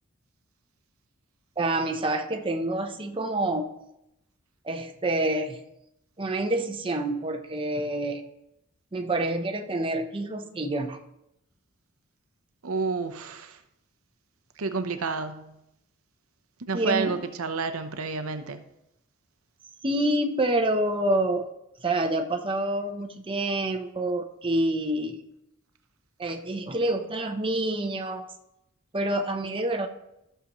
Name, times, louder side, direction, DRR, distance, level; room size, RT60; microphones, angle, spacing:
voice 1, 1.6-3.7 4.6-5.6 6.2-8.2 8.9-11.0 16.7-17.1 19.8-21.4 21.8-25.2 26.2-28.2 28.9-29.9, right 1 dB, 25° right, 0.7 m, -27 dB
voice 2, 12.6-13.6 14.6-15.6 16.6-18.7, right 4 dB, 80° right, 0.7 m, -30 dB
14.0 x 6.8 x 3.0 m
head